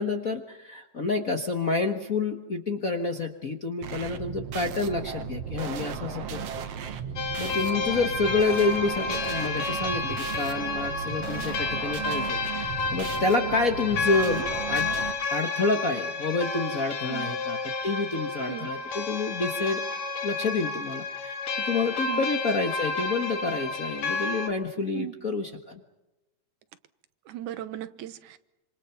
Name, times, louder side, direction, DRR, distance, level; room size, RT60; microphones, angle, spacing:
voice 1, 0.0-7.0 7.4-14.9 15.3-19.8 20.2-25.8, left 3 dB, 45° left, 1.2 m, -29 dB
sound 1, 3.8-15.1, right 7 dB, 60° right, 2.3 m, -36 dB
sound 2, 7.2-24.5, left 3 dB, 65° left, 2.8 m, -31 dB
voice 2, 27.3-28.4, right 12 dB, 85° right, 2.5 m, -37 dB
27.5 x 27.0 x 5.9 m
omnidirectional pair, 3.4 m